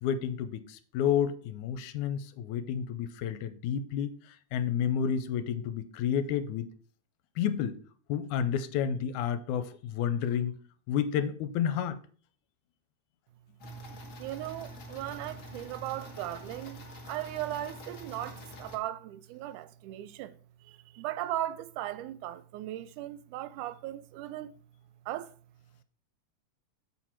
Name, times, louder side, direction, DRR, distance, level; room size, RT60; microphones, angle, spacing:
voice 1, 0.0-6.7 7.4-7.8 8.1-10.6 10.9-12.0, left 8 dB, 85° left, 2.0 m, -30 dB
sound 1, 13.6-18.8, right 1 dB, 45° left, 1.0 m, -45 dB
voice 2, 14.2-20.4 20.6-24.5 25.1-25.3, right 13 dB, 85° right, 2.0 m, -37 dB
7.2 x 4.3 x 5.8 m
omnidirectional pair, 3.6 m